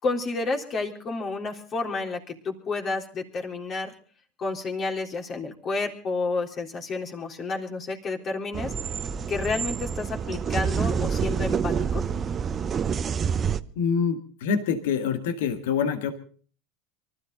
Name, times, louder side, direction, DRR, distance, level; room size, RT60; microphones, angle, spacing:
voice 1, 0.0-3.9 4.4-8.9 9.3-12.0, left 3 dB, 35° left, 2 dB, 3.7 m, -30 dB
sound 1, 8.5-13.6, right 7 dB, 30° right, 0.9 m, -27 dB
voice 2, 13.8-16.1, left 6 dB, 75° left, 8 dB, 2.0 m, -26 dB
24.0 x 14.0 x 3.9 m, 0.42 s
hypercardioid pair, 90°, 0 cm